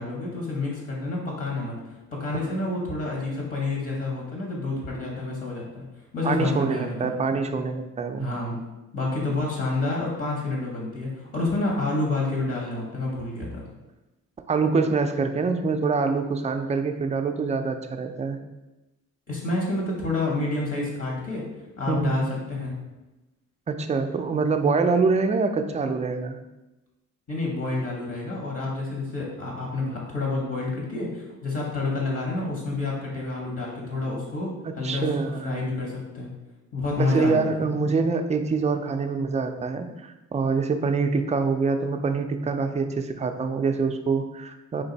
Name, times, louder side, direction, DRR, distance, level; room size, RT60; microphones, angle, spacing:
voice 1, 0.0-5.8 6.1-7.1 8.2-8.6 8.9-13.6 19.3-21.4 21.8-22.7 27.3-36.3 36.7-37.7, left 2 dB, 50° left, -2 dB, 1.2 m, -29 dB
voice 2, 6.2-8.3 14.5-18.4 21.9-22.2 23.7-26.4 34.6-35.5 37.0-44.8, right 4 dB, 25° right, 6 dB, 0.3 m, -25 dB
3.9 x 2.5 x 4.0 m, 1.0 s
cardioid pair, 90°, 30 cm